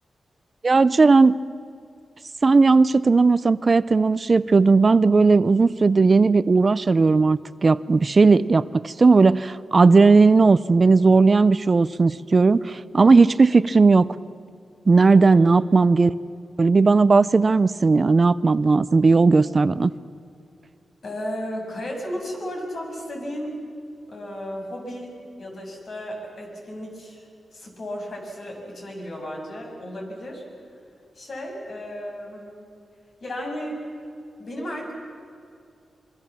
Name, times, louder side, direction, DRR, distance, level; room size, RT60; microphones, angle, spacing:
voice 1, 0.6-1.4 2.4-14.1 14.9-16.1 16.6-19.9, right 4 dB, 40° right, 16 dB, 0.5 m, -16 dB
voice 2, 21.0-23.5 24.1-25.1 25.4-27.3 27.5-30.4 31.2-32.7 33.2-33.8 34.4-34.9, equal, 60° left, 0 dB, 7.0 m, -34 dB
26.0 x 24.0 x 7.3 m, 2.4 s
wide cardioid pair, 100°, 0 cm